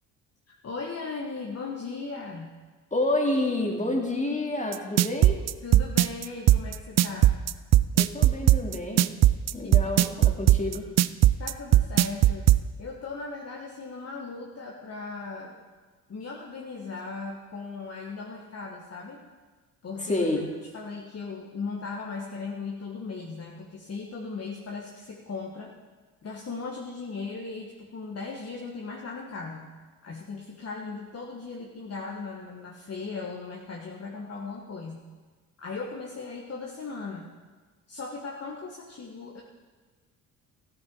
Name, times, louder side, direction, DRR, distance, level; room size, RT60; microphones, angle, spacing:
voice 1, 0.5-2.5 5.6-7.4 9.6-9.9 11.4-12.5 12.8-15.6 16.1-19.2 19.8-20.3 20.7-25.7 26.2-29.7 30.0-35.0 35.6-37.3 37.9-39.4, left 4 dB, 35° left, -1 dB, 1.6 m, -37 dB
voice 2, 2.9-5.4 7.9-9.1 9.5-10.9 20.0-20.4, left 2 dB, 15° left, 1 dB, 2.5 m, -28 dB
sound 1, 4.7-12.6, right 14 dB, 40° right, 0.4 m, -18 dB
14.0 x 8.8 x 4.7 m, 1.4 s
hypercardioid pair, 55°, 42 cm